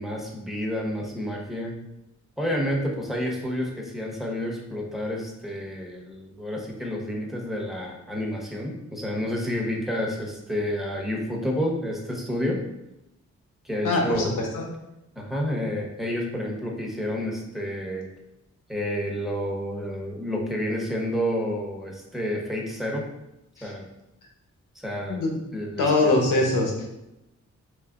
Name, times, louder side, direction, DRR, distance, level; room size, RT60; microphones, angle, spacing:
voice 1, 0.0-1.8 2.4-12.6 13.6-14.4 15.1-18.1 18.7-23.1 23.6-23.8 24.8-25.2 25.5-26.1, equal, ahead, -2 dB, 0.9 m, -29 dB
voice 2, 13.8-14.3 14.5-14.6 23.6-23.7 25.1-25.3 25.8-26.8, left 2 dB, 85° left, 0 dB, 0.9 m, -22 dB
4.8 x 3.1 x 2.4 m, 0.90 s
cardioid pair, 70°, 31 cm